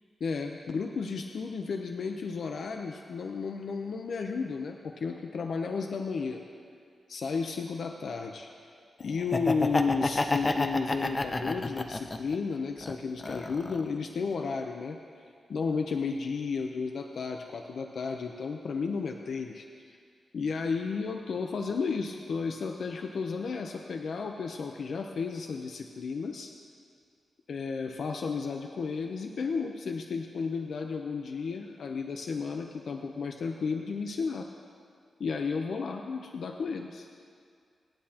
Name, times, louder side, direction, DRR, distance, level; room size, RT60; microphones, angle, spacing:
voice 1, 0.2-6.5 7.1-8.5 9.0-15.0 15.5-20.0 20.3-26.5 27.5-34.5 35.2-37.1, left 5 dB, 65° left, 4 dB, 0.6 m, -33 dB
Laughter, 9.2-12.4 12.8-13.9, left 2 dB, 25° left, 0.6 m, -30 dB
26.0 x 9.6 x 2.9 m, 2.2 s
wide cardioid pair, 130°, 0 cm